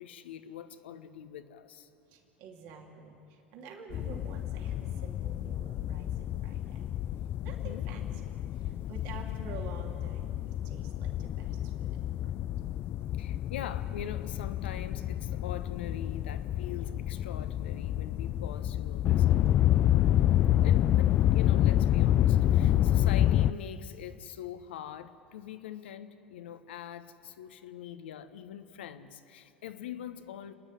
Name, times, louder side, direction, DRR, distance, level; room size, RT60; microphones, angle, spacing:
voice 1, 0.0-1.9 7.5-7.9 13.1-19.4 20.6-30.5, left 10 dB, 70° left, 11 dB, 1.1 m, -43 dB
voice 2, 2.1-6.9 7.4-12.3 22.9-23.1 29.9-30.1, right 5 dB, 55° right, 1 dB, 2.9 m, -49 dB
sound 1, 3.9-23.5, left 12 dB, 40° left, 0.4 m, -28 dB
29.0 x 10.0 x 9.9 m, 2.7 s
figure-of-eight pair, 75°, 6 cm